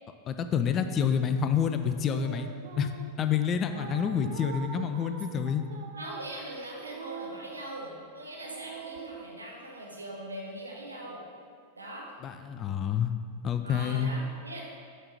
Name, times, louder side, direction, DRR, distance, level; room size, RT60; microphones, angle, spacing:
voice 1, 0.3-2.5 2.8-2.9 3.2-5.7 12.2-13.1 13.4-14.1, left 7 dB, 30° left, 8 dB, 0.3 m, -28 dB
sound 1, 2.1-3.2 3.7-7.9 8.4-9.2, right 6 dB, 55° right, 0.5 m, -43 dB
voice 2, 5.9-11.2 11.8-12.1 13.6-14.6, right 1 dB, 80° right, -2 dB, 1.0 m, -41 dB
8.6 x 3.8 x 3.3 m, 2.1 s
figure-of-eight pair, 90°, 0 cm